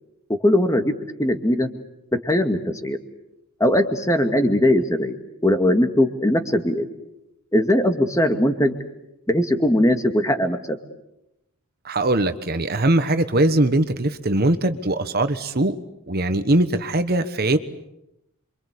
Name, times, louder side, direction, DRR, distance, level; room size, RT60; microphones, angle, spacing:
voice 1, 0.4-1.7 2.2-3.0 3.6-5.2 5.4-6.9 7.5-8.7 9.3-10.8, left 1 dB, 15° left, 6 dB, 2.2 m, -20 dB
voice 2, 11.8-15.8 16.1-17.6, right 1 dB, 45° right, 10 dB, 1.2 m, -21 dB
28.0 x 24.5 x 8.4 m, 0.86 s
head